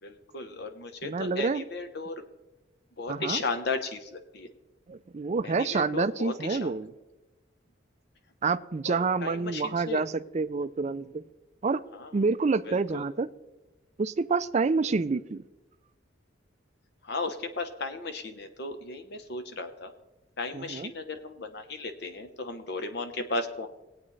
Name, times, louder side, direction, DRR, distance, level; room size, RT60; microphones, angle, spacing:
voice 1, 0.0-2.2 3.0-4.5 5.4-6.8 8.8-10.0 11.9-12.1 12.6-13.0 17.0-19.9 20.4-23.7, left 3 dB, 60° left, 8 dB, 1.0 m, -35 dB
voice 2, 1.0-1.6 3.1-3.4 4.9-6.9 8.4-11.2 11.6-11.8 12.1-13.3 14.0-15.4 20.5-20.9, right 4 dB, 35° right, 13 dB, 0.4 m, -28 dB
19.5 x 8.5 x 3.2 m, 1.0 s
head